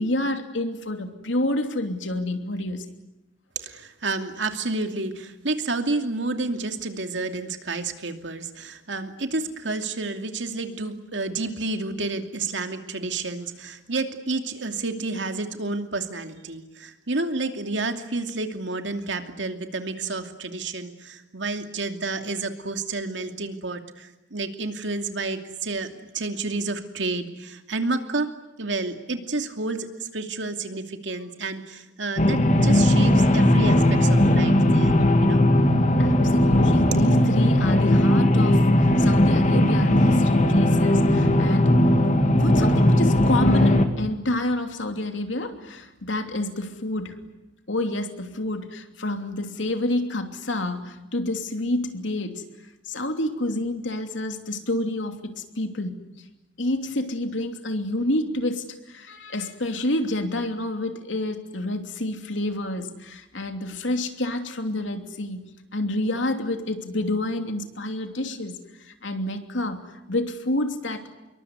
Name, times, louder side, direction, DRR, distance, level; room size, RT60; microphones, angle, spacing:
voice 1, 0.0-2.9 36.0-41.9 42.3-47.2 47.7-52.4 52.8-56.0 56.6-71.0, left 1 dB, 85° left, 6 dB, 3.0 m, -28 dB
voice 2, 3.6-25.9 26.1-28.3 28.6-35.5, right 3 dB, 75° right, 6 dB, 2.7 m, -30 dB
sound 1, 32.2-43.9, left 1 dB, 40° left, 2.5 m, -18 dB
27.0 x 23.0 x 9.7 m, 0.96 s
head